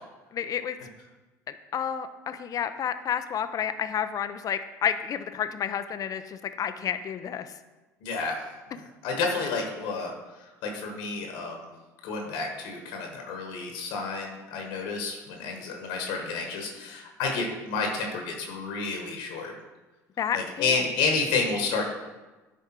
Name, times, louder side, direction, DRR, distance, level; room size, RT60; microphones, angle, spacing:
voice 1, 0.3-0.8 1.5-7.5 20.2-20.8, left 8 dB, 40° left, 10 dB, 0.5 m, -30 dB
voice 2, 8.0-8.4 9.0-10.1 10.6-11.7 12.0-19.5 20.3-21.8, left 4 dB, 65° left, 2 dB, 1.3 m, -30 dB
10.0 x 3.5 x 4.4 m, 1.2 s
hypercardioid pair, 70°, 9 cm